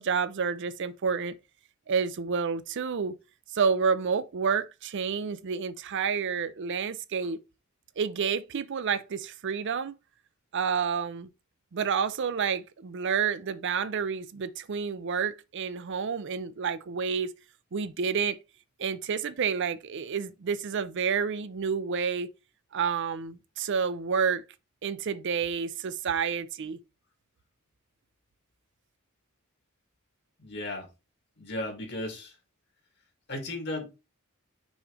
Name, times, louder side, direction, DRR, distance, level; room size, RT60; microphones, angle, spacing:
voice 1, 0.0-1.4 1.9-3.1 3.5-7.4 8.0-9.9 10.5-11.3 11.7-17.3 17.7-18.4 18.8-22.3 22.7-24.4 24.8-26.8, right 6 dB, 60° right, 0.5 m, -29 dB
voice 2, 30.4-30.9 31.4-32.3 33.3-33.9, left 1 dB, 55° left, 2.5 m, -35 dB
6.2 x 3.1 x 4.8 m
head